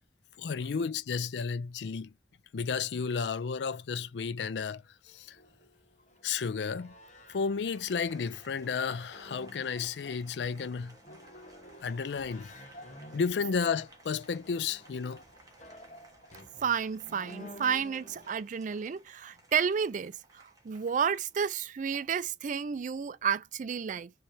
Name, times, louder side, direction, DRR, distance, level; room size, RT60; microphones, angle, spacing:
voice 1, 0.4-2.1 2.5-5.4 6.2-7.0 7.3-11.0 11.8-12.5 13.1-15.2, left 5 dB, 75° left, 0.4 m, -32 dB
sound 1, 4.9-18.4, equal, 40° left, 1.2 m, -52 dB
Applause, 7.7-21.7, right 2 dB, 20° right, 1.5 m, -60 dB
voice 2, 16.6-24.1, right 7 dB, 45° right, 0.4 m, -31 dB
4.7 x 3.2 x 2.7 m
head